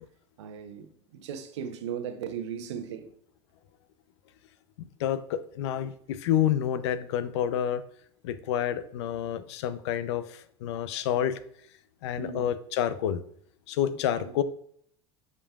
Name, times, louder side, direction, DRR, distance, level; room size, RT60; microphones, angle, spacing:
voice 1, 0.4-3.1 12.2-12.5, right 8 dB, 85° right, 0.8 m, -37 dB
voice 2, 4.8-7.8 8.2-11.4 12.0-13.2 13.7-14.4, left 10 dB, 75° left, 0.5 m, -29 dB
8.1 x 5.3 x 2.4 m
hypercardioid pair, 85°, 14 cm